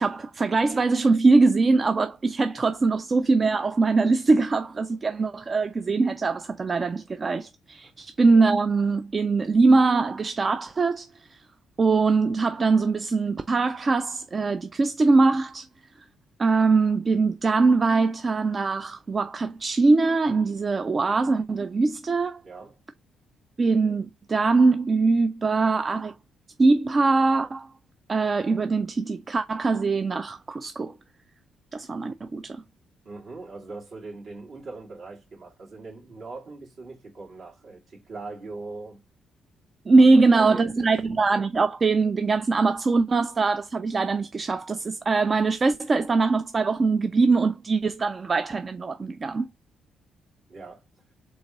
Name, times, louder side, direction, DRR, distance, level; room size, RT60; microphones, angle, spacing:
voice 1, 0.0-11.1 11.8-15.7 16.4-22.4 23.6-26.1 26.6-27.7 28.1-30.9 31.7-32.6 39.9-49.5, right 3 dB, 35° right, 0.4 m, -22 dB
voice 2, 22.4-22.8 33.0-39.0 40.0-40.9 50.5-50.8, right 3 dB, 60° right, 2.5 m, -41 dB
3.9 x 3.6 x 3.0 m
cardioid pair, 90°, 0 cm